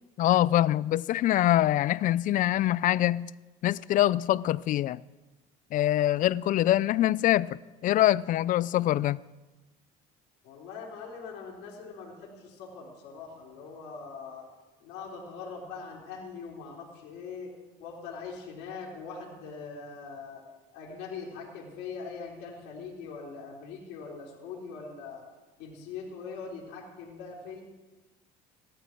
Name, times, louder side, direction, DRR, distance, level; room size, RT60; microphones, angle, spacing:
voice 1, 0.2-3.3 3.6-5.0 5.7-9.2, left 13 dB, 50° left, 0.4 m, -24 dB
voice 2, 10.4-14.5 14.8-17.5 17.8-20.4 20.7-25.2 25.6-27.6, left 5 dB, 70° left, 3.7 m, -42 dB
17.0 x 12.5 x 4.6 m
supercardioid pair, 100°, 18 cm